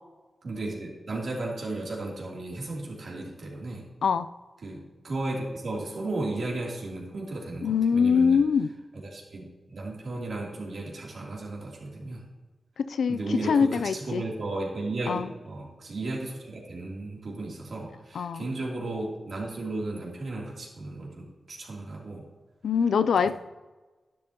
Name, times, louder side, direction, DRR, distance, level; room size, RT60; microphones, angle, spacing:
voice 1, 0.4-3.8 4.6-8.4 9.0-12.2 13.1-22.2, right 2 dB, 70° right, -3 dB, 3.0 m, -34 dB
voice 2, 7.6-8.7 12.8-14.2 15.1-15.3 18.1-18.5 22.6-23.3, left 6 dB, 90° left, 13 dB, 0.4 m, -23 dB
11.5 x 11.0 x 2.9 m, 1.3 s
cardioid pair, 50°, 0 cm